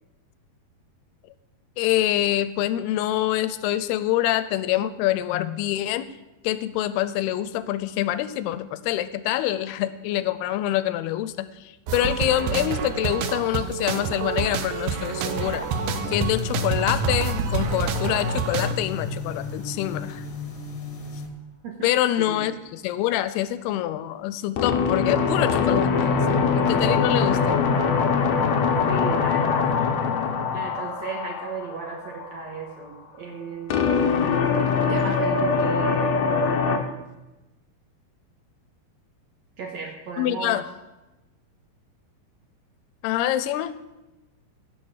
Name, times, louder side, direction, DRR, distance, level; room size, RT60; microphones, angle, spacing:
voice 1, 1.8-6.1 6.4-15.7 16.1-20.2 21.8-27.6 40.2-40.6 43.0-43.7, left 13 dB, 85° left, 14 dB, 2.6 m, -25 dB
sound 1, 11.9-18.7, right 7 dB, 85° right, 1.8 m, -28 dB
sound 2, 13.8-21.3, left 3 dB, 45° left, 1.9 m, -32 dB
sound 3, 17.6-18.3 24.6-32.6 33.7-36.8, left 5 dB, 70° left, 1.7 m, -23 dB
voice 2, 22.1-22.5 28.9-30.2 30.5-34.2 34.9-36.1 39.6-40.7, right 5 dB, 60° right, 0 dB, 2.0 m, -35 dB
16.0 x 6.1 x 6.5 m, 1.0 s
omnidirectional pair, 4.6 m